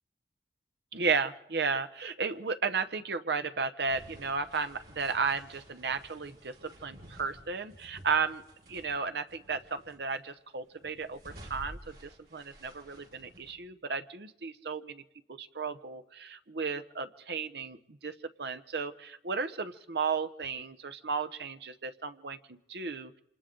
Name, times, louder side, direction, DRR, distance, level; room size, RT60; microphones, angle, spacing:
voice 1, 0.9-8.4 8.7-15.0 15.3-23.2, right 5 dB, 70° right, 9 dB, 0.8 m, -34 dB
sound 1, 3.9-9.0 9.3-10.2 10.7-13.5, right 1 dB, 55° right, 5.5 m, -52 dB
28.0 x 26.5 x 3.8 m, 0.84 s
head